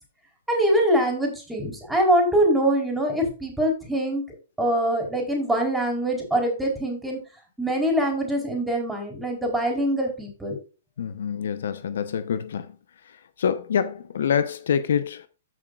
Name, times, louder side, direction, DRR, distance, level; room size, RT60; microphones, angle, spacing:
voice 1, 0.5-4.2 4.6-7.2 7.6-10.6, right 1 dB, 5° right, 4.4 m, -23 dB
voice 2, 11.0-12.7 13.4-15.3, left 7 dB, 70° left, 0.9 m, -26 dB
14.5 x 6.4 x 2.5 m
hypercardioid pair, 130°, 0 cm